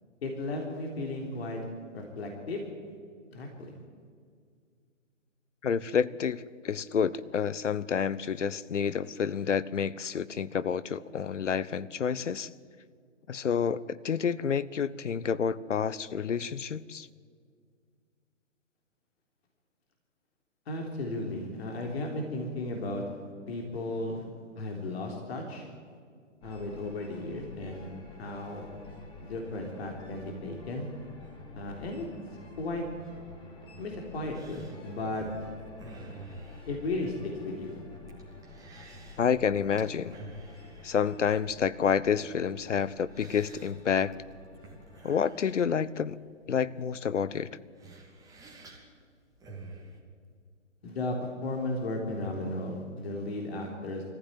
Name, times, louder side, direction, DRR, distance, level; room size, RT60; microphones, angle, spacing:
voice 1, 0.2-1.6 1.9-2.6 3.3-3.7 20.7-23.0 23.5-24.2 24.6-25.7 26.4-27.9 28.2-28.7 29.2-30.9 31.5-32.1 32.6-32.8 33.8-35.3 36.7-37.8 50.8-54.0, left 2 dB, 55° left, 1 dB, 3.7 m, -35 dB
voice 2, 5.6-12.5 13.3-17.1 39.2-40.1 40.8-44.1 45.0-46.2 46.5-47.5, left 7 dB, 70° left, 17 dB, 0.9 m, -29 dB
sound 1, 26.4-45.1, left 2 dB, 15° left, 3.2 m, -49 dB
sound 2, 34.3-50.0, right 2 dB, 10° right, 2.7 m, -51 dB
24.5 x 15.0 x 9.5 m, 2.1 s
figure-of-eight pair, 130°, 38 cm